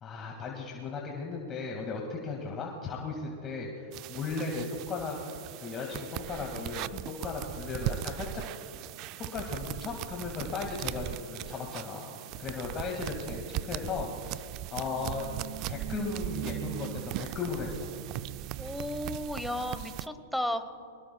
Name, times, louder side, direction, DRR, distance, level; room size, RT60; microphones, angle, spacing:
voice 1, 0.0-5.2 5.6-8.4 9.2-12.1 12.4-15.3 15.7-17.9, left 4 dB, 25° left, 0 dB, 2.0 m, -36 dB
sound 1, 3.9-20.1, right 15 dB, 40° right, 0.4 m, -38 dB
voice 2, 18.6-20.6, left 1 dB, ahead, 8 dB, 1.0 m, -34 dB
23.5 x 20.0 x 2.3 m, 2.5 s
hypercardioid pair, 130°, 0 cm